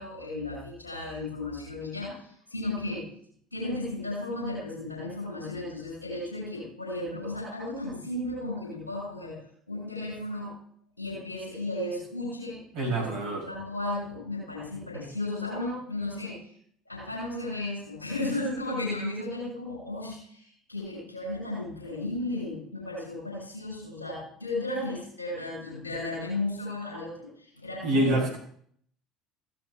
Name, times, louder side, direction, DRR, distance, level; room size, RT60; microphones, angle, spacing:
voice 1, 0.0-3.0 3.5-9.4 9.7-10.5 11.0-12.6 12.8-16.5 16.8-28.2, left 2 dB, 90° left, -4 dB, 6.6 m, -34 dB
voice 2, 12.7-13.4 27.8-28.4, right 1 dB, 65° right, 0 dB, 5.5 m, -26 dB
16.5 x 14.0 x 2.4 m, 0.62 s
figure-of-eight pair, 60°, 0 cm